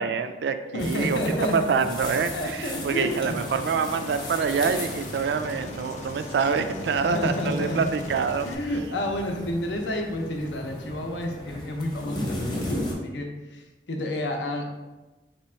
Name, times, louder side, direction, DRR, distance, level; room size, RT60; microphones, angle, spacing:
voice 1, 0.0-1.2 1.5-8.5, right 5 dB, 70° right, 9 dB, 0.3 m, -26 dB
voice 2, 0.7-1.7 2.3-3.4 7.0-7.9 8.4-14.7, left 1 dB, 80° left, 2 dB, 0.7 m, -30 dB
sound 1, 0.8-12.9, left 1 dB, 25° left, 0.8 m, -36 dB
Aircraft, 2.7-8.5, left 3 dB, 40° left, 0.4 m, -40 dB
3.4 x 2.9 x 4.3 m, 1.1 s
head